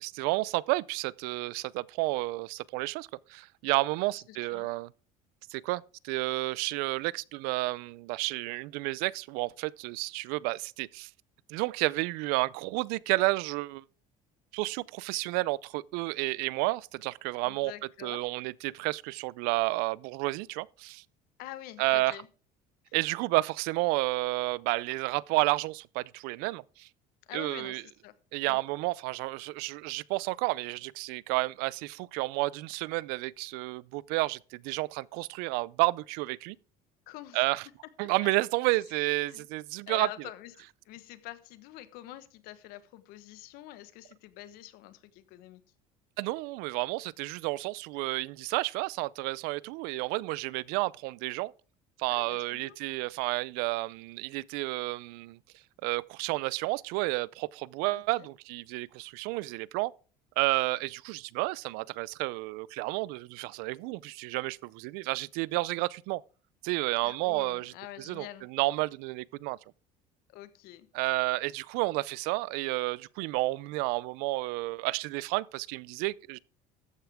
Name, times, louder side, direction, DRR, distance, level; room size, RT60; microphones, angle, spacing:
voice 1, 0.0-4.9 5.5-11.1 11.5-13.8 14.5-17.7 18.0-21.0 21.8-22.1 22.9-26.9 27.3-27.8 28.3-36.6 37.3-37.6 38.0-40.1 46.2-51.5 52.0-55.4 55.8-59.9 60.4-66.2 66.6-67.7 68.0-69.6 70.9-76.4, right 22 dB, 80° right, 0.5 m, -31 dB
voice 2, 4.1-4.7 17.4-18.3 21.4-22.3 27.3-28.1 28.4-28.6 37.1-37.5 38.0-38.1 38.7-39.5 39.9-45.6 52.1-52.8 57.9-58.3 67.0-68.5 70.3-70.9, left 15 dB, 75° left, 1.3 m, -46 dB
14.0 x 9.4 x 3.5 m
cardioid pair, 135°, 16 cm